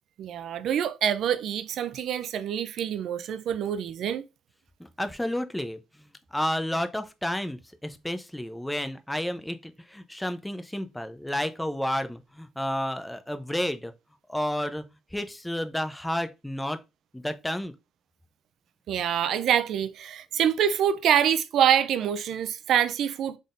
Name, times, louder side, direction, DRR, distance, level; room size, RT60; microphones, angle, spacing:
voice 1, 0.2-4.2 18.9-23.4, right 9 dB, 75° right, 0.4 m, -25 dB
voice 2, 4.8-13.9 14.3-14.8 15.1-16.8 17.1-17.7, left 1 dB, 5° left, 0.6 m, -31 dB
3.9 x 3.6 x 2.5 m
cardioid pair, 90°, 0 cm